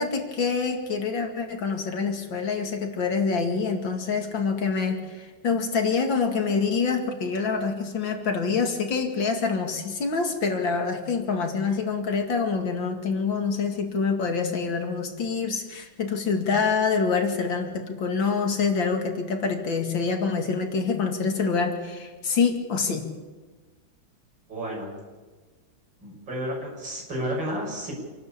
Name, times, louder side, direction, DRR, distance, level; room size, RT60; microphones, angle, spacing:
voice 1, 0.0-23.1, left 5 dB, 70° left, 4 dB, 3.0 m, -26 dB
voice 2, 24.5-24.9 26.0-27.9, equal, 60° right, -4 dB, 7.3 m, -31 dB
27.0 x 12.0 x 8.7 m, 1.3 s
omnidirectional pair, 2.2 m